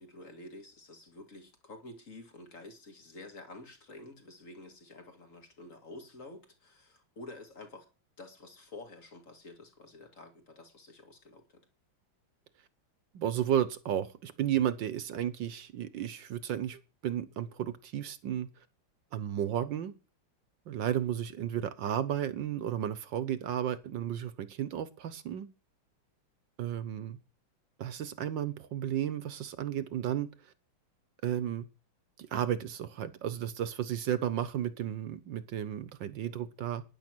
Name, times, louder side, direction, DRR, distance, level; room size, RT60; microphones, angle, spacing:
voice 1, 0.0-7.9 8.2-11.7, left 2 dB, 40° left, 2.2 m, -49 dB
voice 2, 13.1-18.5 19.1-19.9 20.7-25.5 26.6-27.2 27.8-30.3 31.2-31.7 32.2-36.8, right 10 dB, 70° right, 1.6 m, -33 dB
12.5 x 10.0 x 6.2 m
omnidirectional pair, 2.2 m